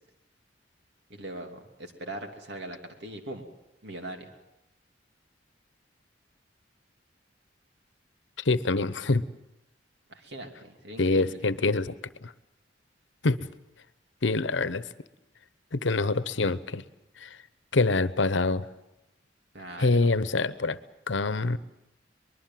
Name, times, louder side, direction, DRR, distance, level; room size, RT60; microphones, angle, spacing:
voice 1, 1.1-3.5 3.8-4.3 10.1-11.5 19.5-20.1, right 1 dB, 65° right, 4 dB, 3.0 m, -41 dB
voice 2, 8.4-9.2 11.0-12.0 12.2-12.3 13.2-13.5 14.2-14.8 15.7-16.8 17.2-17.3 17.7-18.6 19.8-20.8 21.1-21.6, left 3 dB, 85° left, 15 dB, 1.0 m, -25 dB
23.5 x 21.5 x 7.6 m, 0.92 s
head